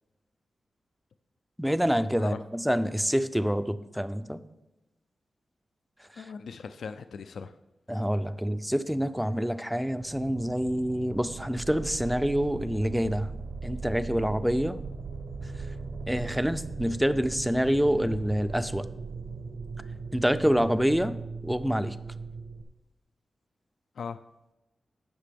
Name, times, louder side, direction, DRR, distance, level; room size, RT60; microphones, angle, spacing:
voice 1, 1.6-4.4 6.2-6.3 7.9-13.3 13.6-14.8 16.1-18.8 20.1-21.2 21.4-22.0, equal, ahead, 12 dB, 0.4 m, -27 dB
voice 2, 6.2-7.6 20.3-20.4 24.0-24.2, left 5 dB, 75° left, 10 dB, 0.4 m, -39 dB
sound 1, 10.0-22.6, right 4 dB, 85° right, 0.7 m, -39 dB
17.5 x 5.9 x 3.4 m, 0.99 s
wide cardioid pair, 175°, 0 cm